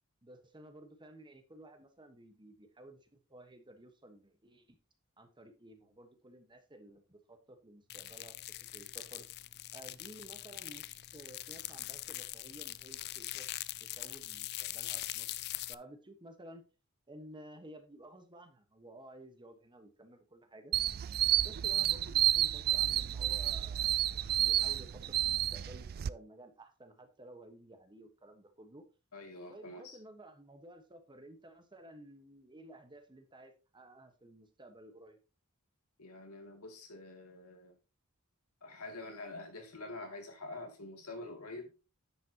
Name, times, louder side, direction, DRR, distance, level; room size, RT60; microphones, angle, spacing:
voice 1, 0.2-4.7 5.2-8.4 8.7-9.3 9.7-13.5 13.8-15.3 15.7-16.6 17.1-20.7 21.4-28.8 29.5-35.2, right 1 dB, 20° right, 1.3 m, -54 dB
sound 1, 7.9-15.7, left 16 dB, 50° left, 0.4 m, -42 dB
sound 2, 20.7-26.1, right 13 dB, 45° right, 0.3 m, -30 dB
voice 2, 29.1-30.0 36.0-37.7 38.6-41.7, left 2 dB, 90° left, 2.5 m, -46 dB
10.0 x 7.6 x 2.9 m
head